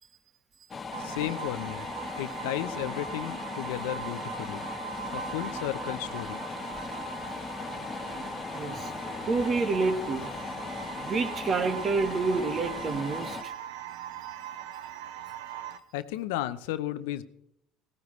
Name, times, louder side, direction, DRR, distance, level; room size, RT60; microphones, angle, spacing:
sound 1, 0.7-13.4, left 5 dB, 25° left, 1.0 m, -38 dB
sound 2, 0.9-15.8, right 11 dB, 85° right, 0.9 m, -41 dB
voice 1, 1.0-4.7 5.1-6.4 15.9-17.2, left 14 dB, 90° left, 12 dB, 0.7 m, -34 dB
voice 2, 8.5-8.9 9.3-10.3 11.0-13.5 14.2-14.4, right 4 dB, 35° right, 9 dB, 1.5 m, -28 dB
17.0 x 14.5 x 3.2 m, 0.75 s
supercardioid pair, 120°, 0 cm